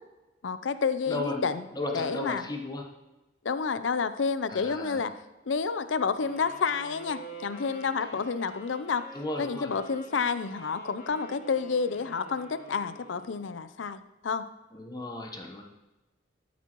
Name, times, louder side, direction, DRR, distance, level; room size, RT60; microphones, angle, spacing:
voice 1, 0.4-1.6 1.9-2.5 3.4-5.1 5.5-9.0 9.4-14.4, left 5 dB, 85° left, 13 dB, 0.5 m, -29 dB
voice 2, 1.0-1.4 1.7-2.9 4.5-5.0 9.1-9.7 14.7-15.6, left 2 dB, 20° left, 2 dB, 1.0 m, -34 dB
Wind instrument woodwind instrument, 6.2-13.6, right 1 dB, 55° left, 3.0 m, -47 dB
13.0 x 8.2 x 3.0 m, 1.1 s
head